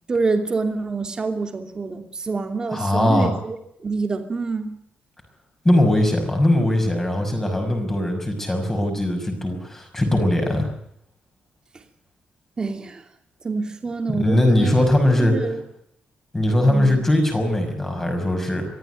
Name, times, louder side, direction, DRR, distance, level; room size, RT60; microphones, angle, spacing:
voice 1, 0.1-4.8 12.6-13.1 13.4-14.9 15.2-15.6 16.7-17.0, right 4 dB, 25° right, 6 dB, 2.7 m, -26 dB
voice 2, 2.7-3.3 5.6-10.7 14.2-15.3 16.3-18.7, left 1 dB, 10° left, 4 dB, 5.7 m, -20 dB
23.5 x 15.0 x 9.2 m, 0.74 s
wide cardioid pair, 180°, 3 cm